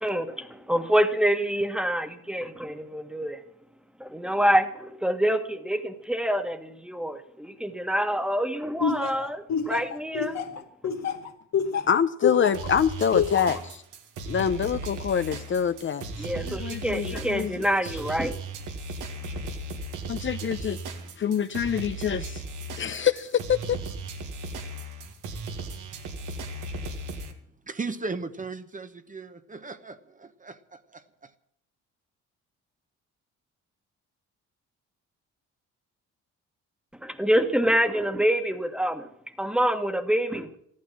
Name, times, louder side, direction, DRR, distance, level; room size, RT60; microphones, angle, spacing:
voice 1, 0.0-3.4 4.0-10.4 16.2-18.4 37.0-39.1 39.4-40.6, equal, 5° right, 1.5 m, -26 dB
Laughter, 8.8-12.7 13.1-13.6, left 6 dB, 60° left, 2.0 m, -26 dB
voice 2, 11.9-13.8 14.3-17.5 20.1-20.8 21.2-22.4 22.8-23.8, left 8 dB, 40° left, 0.7 m, -26 dB
sound 1, 12.5-27.3, right 2 dB, 85° right, 2.1 m, -36 dB
voice 3, 27.7-31.3, right 4 dB, 25° right, 1.0 m, -37 dB
14.0 x 12.0 x 7.4 m
cardioid pair, 90°, 30 cm